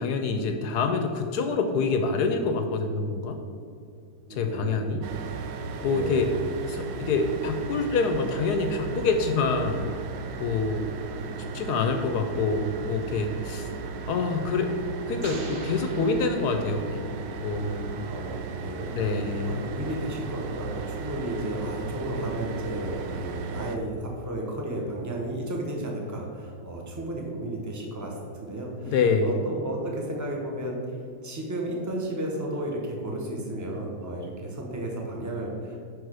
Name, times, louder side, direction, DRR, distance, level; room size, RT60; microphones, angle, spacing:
voice 1, 0.0-3.4 4.3-5.0 5.8-6.3 6.7-9.9 10.4-10.9 11.5-13.7 14.1-14.8 15.1-17.1 17.4-18.0 18.9-19.7 28.9-29.4, left 4 dB, 75° left, 6 dB, 1.1 m, -26 dB
voice 2, 4.3-5.1 5.7-6.4 18.1-19.0 19.4-31.0 31.2-35.8, right 1 dB, 15° right, -1 dB, 0.7 m, -33 dB
sound 1, 5.0-23.8, right 4 dB, 90° right, 1.2 m, -36 dB
sound 2, 15.2-17.1, right 2 dB, 55° right, 1.4 m, -43 dB
5.1 x 4.8 x 6.1 m, 2.4 s
omnidirectional pair, 1.9 m